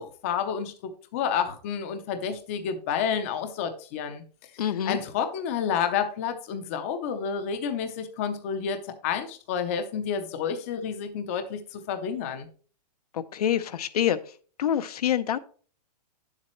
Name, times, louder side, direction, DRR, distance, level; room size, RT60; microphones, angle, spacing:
voice 1, 0.0-4.2 4.9-8.8 9.0-12.5, left 7 dB, 20° left, 8 dB, 0.6 m, -30 dB
voice 2, 4.6-5.0 13.1-14.2 14.6-15.4, left 10 dB, 65° left, 13 dB, 0.7 m, -26 dB
9.9 x 7.4 x 3.1 m, 0.41 s
hypercardioid pair, 180°, 21 cm